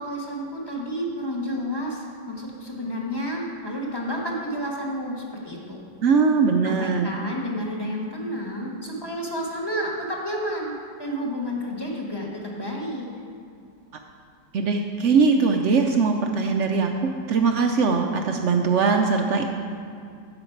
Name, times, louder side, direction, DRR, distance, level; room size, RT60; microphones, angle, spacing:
voice 1, 0.0-5.8 6.6-13.0, equal, 15° left, -2 dB, 1.0 m, -30 dB
voice 2, 6.0-7.1 14.5-19.5, right 4 dB, 80° right, 4 dB, 0.6 m, -21 dB
10.5 x 7.8 x 4.5 m, 2.4 s
omnidirectional pair, 1.9 m